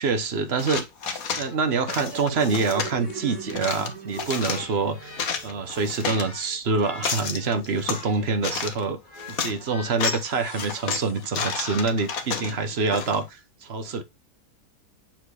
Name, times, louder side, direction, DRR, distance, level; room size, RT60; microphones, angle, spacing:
voice 1, 0.0-9.0 9.3-14.0, right 4 dB, 45° right, 1.1 m, -26 dB
sound 1, 0.6-1.5 1.9-2.9 3.5-4.7 5.0-6.3 6.8-8.0 8.4-8.9 9.2-9.5 9.9-10.3 10.6-13.2, left 6 dB, 65° left, 1.6 m, -30 dB
sound 2, 1.2-6.6, right 6 dB, 75° right, 2.2 m, -40 dB
sound 3, 2.8-5.3 5.6-11.7, left 3 dB, 30° left, 1.8 m, -46 dB
7.4 x 4.6 x 3.3 m
omnidirectional pair, 1.7 m